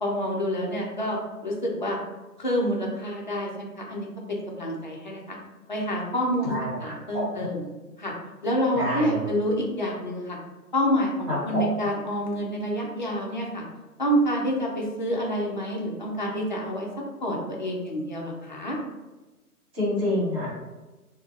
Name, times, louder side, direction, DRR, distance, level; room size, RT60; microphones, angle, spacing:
voice 1, 0.0-2.0 2.4-5.4 5.7-6.5 6.8-7.6 8.0-8.1 8.4-10.4 10.7-13.6 14.0-16.9 17.2-18.8, equal, 35° left, -2 dB, 0.4 m, -28 dB
voice 2, 6.4-7.5 8.7-9.3 11.3-11.6 19.7-20.5, left 1 dB, 15° right, -9 dB, 0.9 m, -28 dB
3.6 x 2.0 x 2.4 m, 1.2 s
figure-of-eight pair, 130°, 47 cm